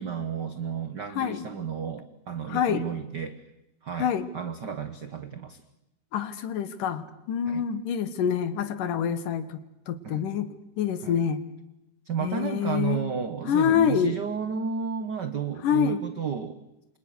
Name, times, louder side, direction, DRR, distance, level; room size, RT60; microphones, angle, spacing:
voice 1, 0.0-3.5 3.8-5.6 7.5-7.7 10.0-10.3 11.0-11.2 12.0-16.6, right 7 dB, 75° right, 11 dB, 1.0 m, -32 dB
voice 2, 2.5-2.8 4.0-4.3 6.1-9.6 9.9-10.5 10.8-11.4 12.2-13.0 13.5-14.1 15.6-16.0, left 8 dB, 80° left, 12 dB, 3.1 m, -26 dB
29.0 x 26.5 x 6.5 m, 0.91 s
omnidirectional pair, 3.7 m